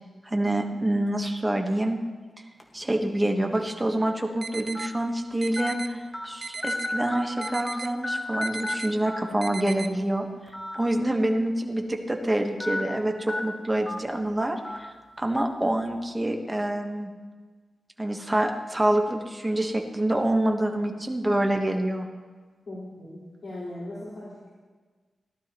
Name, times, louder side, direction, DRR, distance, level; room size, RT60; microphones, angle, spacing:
voice 1, 0.2-2.0 2.7-10.3 10.7-14.9 15.2-17.1 18.0-22.1, right 1 dB, 15° right, 2 dB, 1.2 m, -26 dB
sound 1, 2.6-2.8 3.5-3.6 4.7-4.9 5.6-5.7 6.1-6.2 6.6-8.7 9.1-9.2 10.5-10.7 11.1-11.2 12.6-12.8 13.3-13.4 13.9-14.0 14.6-14.8, left 1 dB, 15° left, 1.5 m, -31 dB
sound 2, 4.4-4.9 5.4-5.9 6.4-6.9 7.4-7.9 8.4-8.9 9.4-9.9, right 4 dB, 40° right, 0.6 m, -36 dB
voice 2, 22.7-24.5, left 1 dB, 55° left, -10 dB, 4.0 m, -39 dB
18.0 x 12.0 x 3.0 m, 1.4 s
wide cardioid pair, 120°, 0 cm